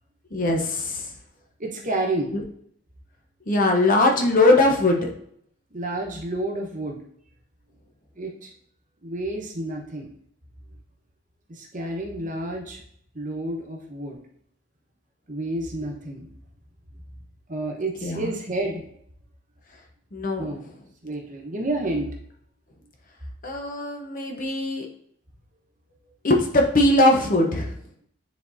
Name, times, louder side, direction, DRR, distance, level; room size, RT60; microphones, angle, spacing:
voice 1, 0.3-1.1 2.3-2.4 3.5-5.1 18.0-18.3 20.1-20.4 23.4-24.9 26.2-27.7, left 2 dB, 40° left, 1 dB, 0.8 m, -20 dB
voice 2, 1.6-2.3 5.7-7.0 8.1-8.5 9.0-10.1 11.5-12.8 13.1-14.2 15.3-16.3 17.5-18.8 20.4-20.6 21.0-22.1, right 2 dB, 40° right, 0 dB, 1.1 m, -30 dB
9.7 x 3.9 x 2.7 m, 0.68 s
head